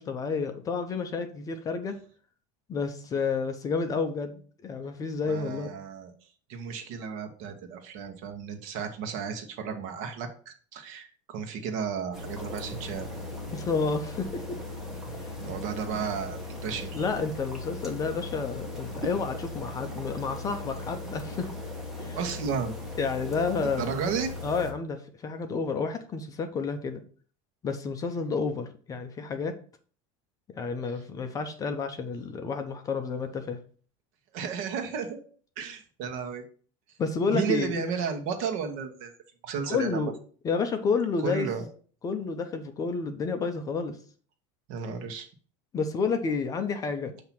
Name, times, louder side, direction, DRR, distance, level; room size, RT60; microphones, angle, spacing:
voice 1, 0.0-1.9 2.7-5.7 13.5-14.4 16.9-21.5 22.0-22.2 23.0-23.9 24.4-27.0 27.6-29.5 30.5-33.6 37.0-37.8 39.7-40.2 40.4-41.5 42.0-44.0 45.7-47.1, left 4 dB, 20° left, 7 dB, 0.5 m, -30 dB
voice 2, 5.2-6.1 6.5-13.1 15.4-17.1 22.1-22.7 23.6-24.3 34.3-35.2 35.6-36.4 37.3-39.1 39.4-40.1 41.2-41.6 44.7-45.3, right 6 dB, 50° right, 5 dB, 1.1 m, -33 dB
sound 1, 12.1-24.7, left 2 dB, ahead, 1.2 m, -38 dB
7.1 x 2.8 x 5.9 m, 0.43 s
cardioid pair, 165°, 17 cm